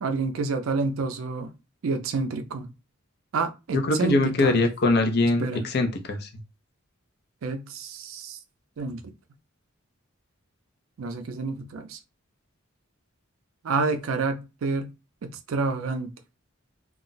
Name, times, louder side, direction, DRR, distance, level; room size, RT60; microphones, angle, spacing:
voice 1, 0.0-1.5 1.8-2.7 3.3-4.6 5.4-5.7 7.4-8.4 8.8-9.1 11.0-12.0 13.6-14.9 15.2-16.1, right 4 dB, 90° right, 0.4 m, -29 dB
voice 2, 3.7-6.3, left 2 dB, 50° left, 0.5 m, -22 dB
2.3 x 2.0 x 3.8 m
head